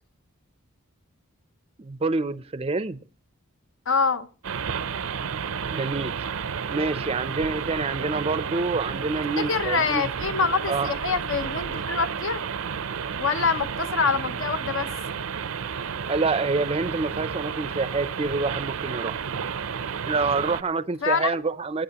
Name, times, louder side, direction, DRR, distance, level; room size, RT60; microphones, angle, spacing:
voice 1, 1.8-3.0 5.7-6.1 6.7-10.0 10.7-10.9 16.1-19.2 20.1-21.8, right 3 dB, 25° right, 0.5 m, -27 dB
voice 2, 3.9-4.3 9.4-12.4 13.2-14.9 21.0-21.3, left 5 dB, 65° left, 0.8 m, -25 dB
sound 1, 4.4-20.6, right 6 dB, 75° right, 0.5 m, -31 dB
21.5 x 9.0 x 2.9 m
head